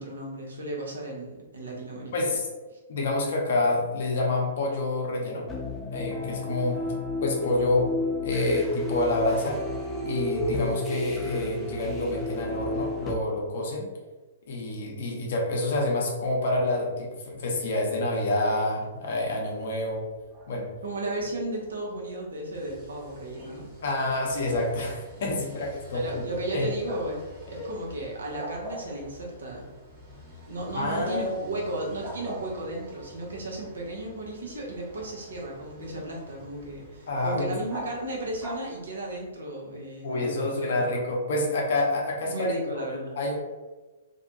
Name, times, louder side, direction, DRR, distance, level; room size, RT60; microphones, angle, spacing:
voice 1, 0.0-2.1 20.8-23.7 25.9-27.2 27.5-29.7 30.5-40.9 42.2-43.2, right 1 dB, 70° right, -2 dB, 0.8 m, -34 dB
voice 2, 2.1-2.5 2.9-5.5 5.9-6.9 7.2-7.9 8.2-9.6 10.0-13.9 14.5-20.0 20.5-20.7 23.8-26.2 26.5-26.7 27.6-27.7 30.7-31.4 37.1-37.5 40.0-42.9 43.2-43.4, left 2 dB, 55° left, 0 dB, 0.7 m, -27 dB
sound 1, 5.5-13.2, left 2 dB, 5° left, 0.5 m, -32 dB
Bark, 20.0-39.3, right 1 dB, 35° right, 0.7 m, -47 dB
sound 2, 22.5-38.6, left 1 dB, 20° right, 1.1 m, -49 dB
2.6 x 2.2 x 2.7 m, 1.2 s
figure-of-eight pair, 115°, 0 cm